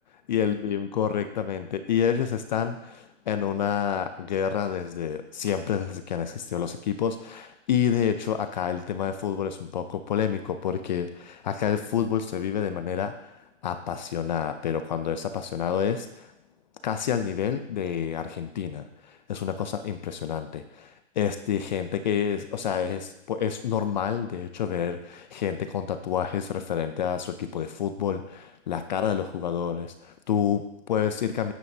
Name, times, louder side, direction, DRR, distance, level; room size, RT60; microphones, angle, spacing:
voice 1, 0.3-13.3 13.6-16.3 16.8-31.5, left 8 dB, 35° left, 9 dB, 0.4 m, -28 dB
9.4 x 9.0 x 2.7 m, 0.85 s
hypercardioid pair, 150°, 39 cm